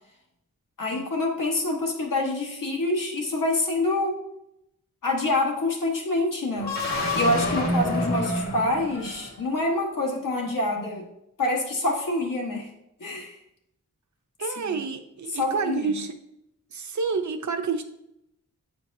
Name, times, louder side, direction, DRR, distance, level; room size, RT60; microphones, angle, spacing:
voice 1, 0.8-4.2 5.0-6.7 7.1-11.1 11.4-12.7 13.0-13.4 14.6-14.8 15.4-16.0, left 2 dB, 75° left, 0 dB, 1.5 m, -26 dB
sound 1, 6.5-9.5, left 1 dB, 55° left, 1.6 m, -27 dB
voice 2, 14.4-16.2 16.7-17.8, right 5 dB, 60° right, 6 dB, 0.7 m, -29 dB
8.6 x 4.5 x 2.7 m, 0.82 s
wide cardioid pair, 125°, 32 cm